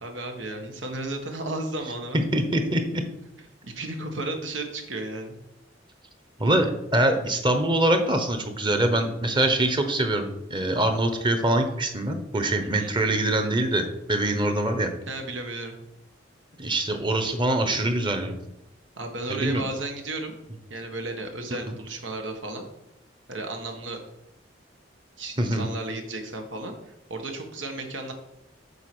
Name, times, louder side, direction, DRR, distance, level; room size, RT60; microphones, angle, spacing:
voice 1, 0.0-2.2 3.6-5.4 12.6-12.9 15.1-15.7 19.0-20.4 20.7-22.6 23.3-24.0 25.2-26.7 27.1-28.1, right 2 dB, 85° right, 4 dB, 1.5 m, -34 dB
voice 2, 2.3-3.0 6.4-14.9 16.6-18.4 19.3-19.6 21.7-21.8 25.4-25.7, right 1 dB, 25° right, 6 dB, 1.1 m, -24 dB
8.1 x 4.8 x 6.2 m, 0.86 s
head